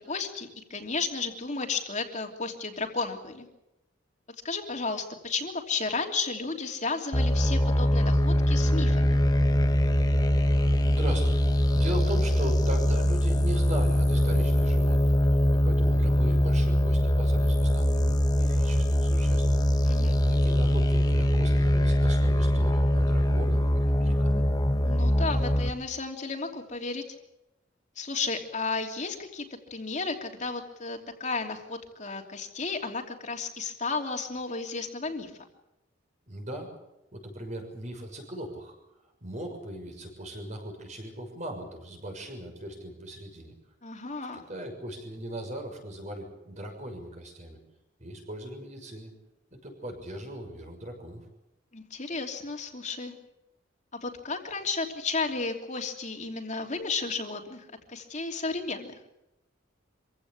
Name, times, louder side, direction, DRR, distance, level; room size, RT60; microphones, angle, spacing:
voice 1, 0.0-3.5 4.4-9.2 19.8-20.2 24.8-27.0 28.0-29.4 29.7-35.3 43.8-44.4 51.7-53.2 53.9-59.0, left 4 dB, 40° left, 3 dB, 3.1 m, -33 dB
sound 1, 7.1-25.7, equal, 20° left, 1.4 m, -23 dB
voice 2, 10.4-11.4 11.7-15.2 15.5-19.4 20.3-24.4 36.3-36.7 37.1-43.5 44.3-47.6 48.0-49.1 49.5-51.2, right 1 dB, 40° right, 4 dB, 6.5 m, -39 dB
26.0 x 16.5 x 8.9 m, 0.90 s
head